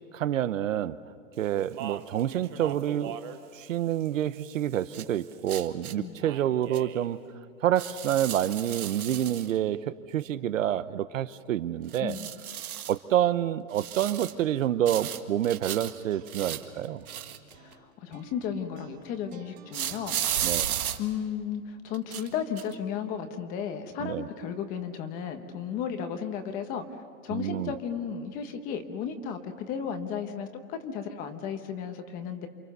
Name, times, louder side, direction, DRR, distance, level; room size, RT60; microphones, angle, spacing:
voice 1, 0.1-1.0 1.4-3.2 3.5-7.2 7.6-12.2 12.9-17.0 20.4-20.7 24.0-24.3 27.3-27.7, right 11 dB, 60° right, 14 dB, 1.0 m, -28 dB
Speech, 1.3-5.5 6.2-7.1, right 10 dB, 20° right, 0.7 m, -43 dB
sound 1, 4.9-5.0 5.5-5.9 6.7-6.8 7.8-9.5 11.9-13.0 13.7-14.4 14.9-15.9 16.3-17.7 19.7-21.0 21.9-22.3 22.6-22.7, right 10 dB, 80° right, 2.1 m, -34 dB
voice 2, 12.0-12.3 17.5-20.7 21.0-26.8 27.2-32.5, left 7 dB, 20° left, 8 dB, 1.1 m, -34 dB
sound 2, 15.7-21.0, right 7 dB, 40° right, 3.3 m, -53 dB
29.0 x 26.5 x 6.8 m, 2.3 s
hypercardioid pair, 165°, 43 cm